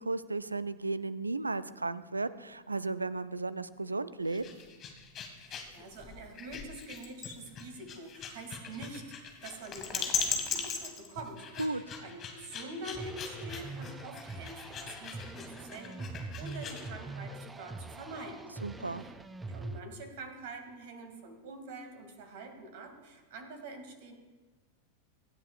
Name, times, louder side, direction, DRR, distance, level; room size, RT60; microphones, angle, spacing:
voice 1, 0.0-4.4 11.6-11.8 18.6-19.1, right 3 dB, 80° right, 16 dB, 0.5 m, -34 dB
sound 1, 4.2-16.9, left 5 dB, 30° left, 1.9 m, -39 dB
voice 2, 5.4-18.6 19.0-19.1 19.5-24.1, right 2 dB, 50° right, 5 dB, 2.3 m, -46 dB
sound 2, 12.9-19.8, right 2 dB, 10° right, 0.6 m, -43 dB
24.5 x 10.0 x 2.5 m, 1.3 s
figure-of-eight pair, 90°, 0 cm